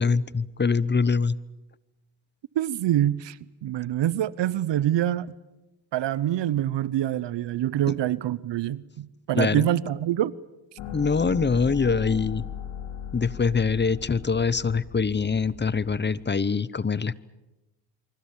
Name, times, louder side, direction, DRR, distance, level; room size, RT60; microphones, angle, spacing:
voice 1, 0.0-1.4 9.3-9.7 10.9-12.4 13.1-17.2, left 5 dB, 25° left, 0.8 m, -24 dB
voice 2, 2.6-5.3 5.9-10.3, right 12 dB, 65° right, 0.8 m, -25 dB
sound 1, 10.8-16.0, left 8 dB, 85° left, 4.3 m, -37 dB
25.0 x 24.5 x 7.4 m
supercardioid pair, 65°, 46 cm